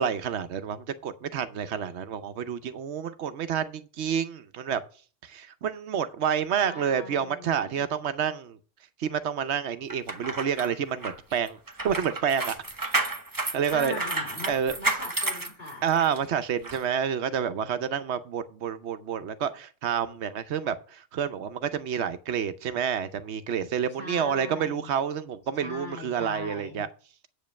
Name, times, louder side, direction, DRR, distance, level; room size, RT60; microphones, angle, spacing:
voice 1, 0.0-4.8 5.2-8.6 9.0-11.6 11.8-13.0 13.5-14.0 14.5-14.8 15.8-26.9, right 8 dB, 80° right, 11 dB, 1.0 m, -29 dB
voice 2, 6.6-7.8 13.5-15.9 24.0-24.9 25.6-26.8, left 2 dB, 65° left, -3 dB, 5.3 m, -40 dB
sound 1, 9.9-16.2 16.6-16.8, right 2 dB, 20° right, 0.9 m, -31 dB
8.2 x 5.3 x 7.0 m, 0.39 s
omnidirectional pair, 1.1 m